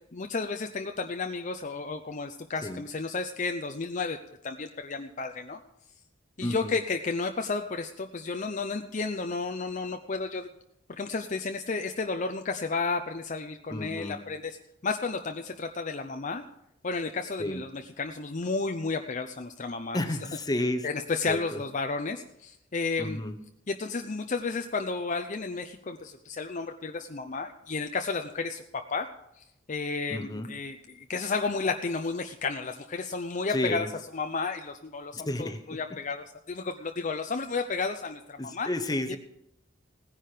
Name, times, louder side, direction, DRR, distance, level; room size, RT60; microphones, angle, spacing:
voice 1, 0.1-4.2 4.4-5.6 6.4-10.5 10.9-14.6 14.8-16.4 16.8-20.0 20.8-23.2 23.7-28.6 28.9-29.1 29.4-33.9 34.1-38.7 39.1-39.2, left 4 dB, 40° left, 6 dB, 0.7 m, -32 dB
voice 2, 6.4-6.8 13.7-14.2 17.4-17.6 19.9-20.9 21.3-21.6 23.0-23.4 30.1-30.5 33.5-33.9 35.1-35.8 38.4-39.2, left 1 dB, 20° left, 8 dB, 1.0 m, -31 dB
17.0 x 10.5 x 5.0 m, 0.79 s
head